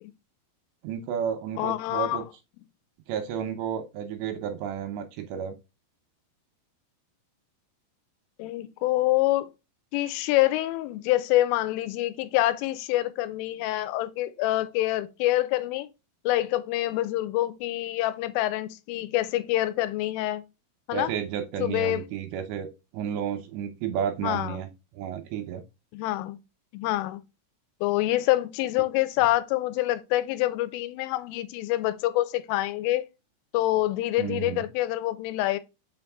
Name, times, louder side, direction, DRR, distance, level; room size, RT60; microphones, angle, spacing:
voice 1, 0.8-2.2 3.1-5.5 20.9-22.7 22.9-24.7 24.9-25.6 34.2-34.7, right 8 dB, 80° right, 2.7 m, -32 dB
voice 2, 1.6-2.2 8.4-9.5 9.9-15.9 16.3-20.4 20.9-21.1 21.6-22.0 24.2-24.6 25.9-26.4 26.7-27.2 27.8-33.1 33.5-35.6, left 16 dB, 90° left, 3.2 m, -26 dB
5.9 x 5.1 x 3.5 m
omnidirectional pair, 5.6 m